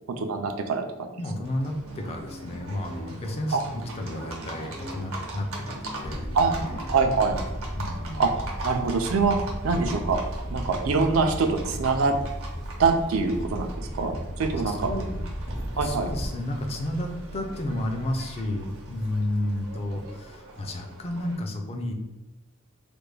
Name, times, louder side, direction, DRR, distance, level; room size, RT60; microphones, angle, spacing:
voice 1, 0.1-0.9 3.5-3.6 6.3-6.5 6.9-7.4 8.2-8.3 8.6-9.4 9.6-10.2 10.5-12.2 12.8-14.9 15.8-16.1, right 4 dB, 75° right, 5 dB, 0.4 m, -24 dB
voice 2, 1.2-6.7 7.8-8.3 14.7-15.2 15.7-21.9, left 1 dB, 30° left, 3 dB, 0.4 m, -32 dB
Livestock farm animals working animals, 1.4-21.4, right 2 dB, 90° right, 0.9 m, -41 dB
sound 1, 1.5-8.7, equal, 70° left, 1.2 m, -45 dB
sound 2, 6.0-16.3, equal, 85° left, 1.0 m, -34 dB
3.3 x 2.2 x 3.2 m, 1.1 s
head